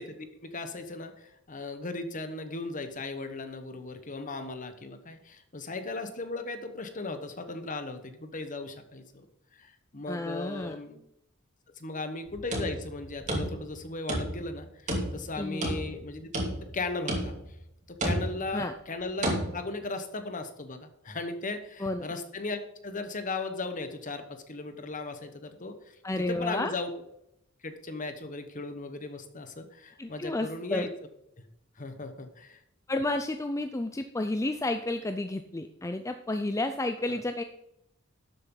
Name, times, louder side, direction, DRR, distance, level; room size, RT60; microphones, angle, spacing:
voice 1, 0.0-9.3 9.5-11.0 11.8-16.3 16.7-17.3 17.9-26.0 26.3-26.9 27.6-30.9 31.8-32.6 37.1-37.2, left 3 dB, 40° left, 8 dB, 1.2 m, -37 dB
voice 2, 10.1-10.8 15.3-15.7 18.5-18.7 21.8-22.0 26.0-26.7 30.0-30.9 32.9-37.4, left 2 dB, 15° left, 8 dB, 0.5 m, -31 dB
sound 1, 12.3-13.8 14.1-14.6 14.9-16.0 16.3-16.8 17.1-17.5 18.0-18.5 19.2-19.5, right 1 dB, 35° right, 2.9 m, -31 dB
12.0 x 8.0 x 3.9 m, 0.82 s
head